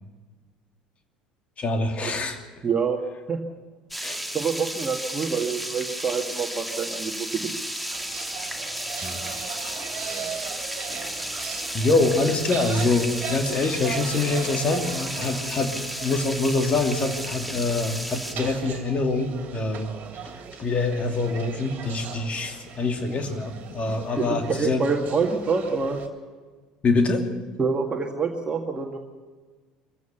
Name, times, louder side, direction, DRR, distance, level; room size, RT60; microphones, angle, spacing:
voice 1, 1.6-2.4 4.0-4.3 9.0-9.3 10.8-10.9 11.7-15.7 16.0-19.9 20.6-24.8 26.8-27.2, left 3 dB, 35° left, 5 dB, 2.6 m, -25 dB
voice 2, 2.6-3.0 3.3-3.4 4.3-7.4 24.2-26.0 27.6-29.0, right 5 dB, 25° right, 2 dB, 2.1 m, -26 dB
sound 1, 3.9-18.4, right 1 dB, ahead, 2.0 m, -33 dB
sound 2, 7.9-26.1, right 8 dB, 45° right, 2.9 m, -39 dB
24.5 x 15.5 x 7.0 m, 1.4 s
figure-of-eight pair, 65°, 4 cm